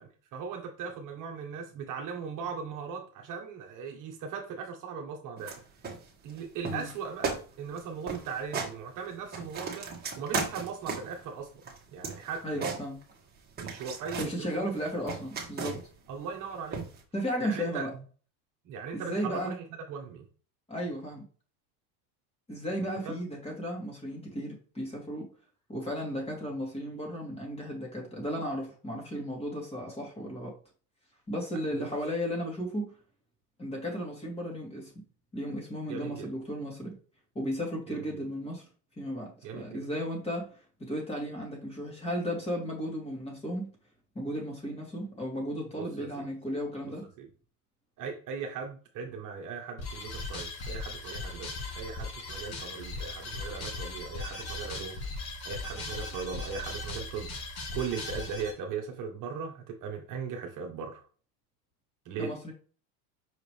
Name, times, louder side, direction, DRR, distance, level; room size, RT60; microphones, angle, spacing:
voice 1, 0.0-5.6 6.2-9.9 10.2-11.5 11.9-12.7 13.6-14.7 16.1-16.9 17.4-17.9 18.6-20.2 23.0-23.2 31.7-31.9 35.9-36.3 37.9-38.0 39.4-39.8 45.8-46.2 46.8-46.9 47.2-47.3 48.0-61.0 62.0-62.3, right 6 dB, 45° right, 1.3 m, -38 dB
sound 1, 5.4-5.6 5.8-6.4 6.6-7.0 7.2-7.4 7.7-7.8 8.1-8.7 9.1-11.2 11.6-13.3 13.6-14.3 14.7-16.0 16.7-17.0, right 4 dB, 20° right, 1.8 m, -35 dB
voice 2, 12.4-13.0 14.2-15.8 17.1-17.9 18.9-19.6 20.7-21.3 22.5-25.3 25.7-30.5 31.3-32.9 33.6-34.9 35.3-37.0 37.3-38.6 39.0-40.5 40.8-43.7 44.1-47.1 62.2-62.5, equal, 15° left, 2.6 m, -34 dB
sound 2, 49.8-58.5, left 2 dB, 55° left, 3.1 m, -38 dB
5.9 x 5.0 x 3.4 m
supercardioid pair, 135°, 45 cm